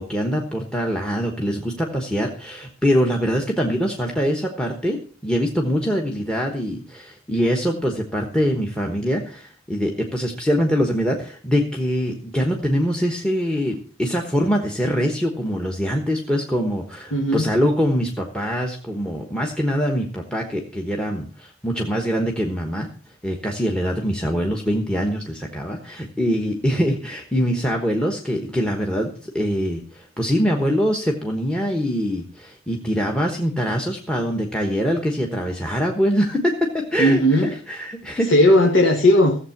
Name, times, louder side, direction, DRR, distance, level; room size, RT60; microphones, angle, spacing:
voice 1, 0.0-22.9 23.2-38.3, equal, 5° left, 3 dB, 1.2 m, -23 dB
voice 2, 17.1-17.5 37.0-37.5 38.3-39.4, left 1 dB, 65° left, 1 dB, 1.6 m, -16 dB
15.0 x 7.4 x 5.9 m, 0.41 s
head